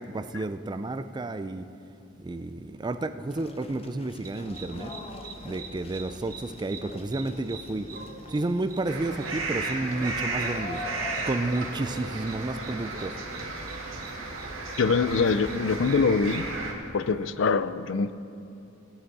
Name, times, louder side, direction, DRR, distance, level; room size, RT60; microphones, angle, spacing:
voice 1, 0.0-1.6 2.2-4.9 5.4-7.9 8.3-10.8 11.2-13.1, right 2 dB, 20° right, 10 dB, 0.4 m, -31 dB
sound 1, 3.3-16.4, left 2 dB, 30° left, 0.8 m, -45 dB
sound 2, 4.2-16.5, right 3 dB, 45° right, 1.1 m, -46 dB
sound 3, 8.9-16.7, right 3 dB, 90° right, 2.0 m, -34 dB
voice 2, 14.8-16.4 16.9-18.1, left 4 dB, 65° left, 14 dB, 0.4 m, -24 dB
17.5 x 10.0 x 4.1 m, 2.6 s
head